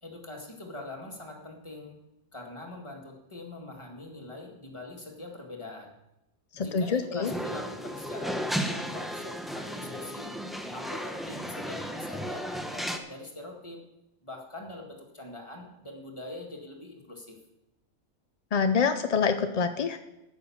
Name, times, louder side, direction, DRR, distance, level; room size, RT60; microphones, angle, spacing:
voice 1, 0.0-2.0 2.3-5.9 6.5-10.3 10.7-13.8 14.2-17.4, left 2 dB, 20° left, 0 dB, 2.1 m, -43 dB
voice 2, 6.6-7.3 18.5-20.0, left 5 dB, 55° left, 8 dB, 0.4 m, -26 dB
sound 1, 7.2-13.0, equal, ahead, 0.7 m, -34 dB
9.7 x 9.3 x 7.2 m, 0.91 s
omnidirectional pair, 1.5 m